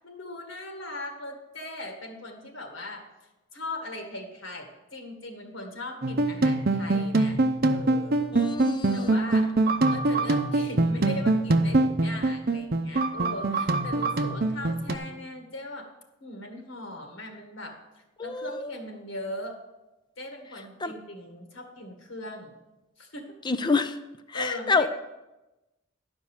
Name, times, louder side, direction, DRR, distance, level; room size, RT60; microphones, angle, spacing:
voice 1, 0.0-3.0 3.5-8.3 8.9-9.5 9.9-15.9 16.2-17.8 18.2-19.6 20.2-22.6 23.0-23.3 24.3-24.9, left 1 dB, 70° left, 3 dB, 1.8 m, -39 dB
sound 1, 6.0-15.0, right 2 dB, 45° right, 0.6 m, -24 dB
voice 2, 8.3-9.2 18.2-18.7 20.8-20.9 23.5-23.9 24.3-24.9, left 4 dB, 20° left, 12 dB, 0.5 m, -27 dB
11.5 x 5.3 x 7.2 m, 1.0 s
head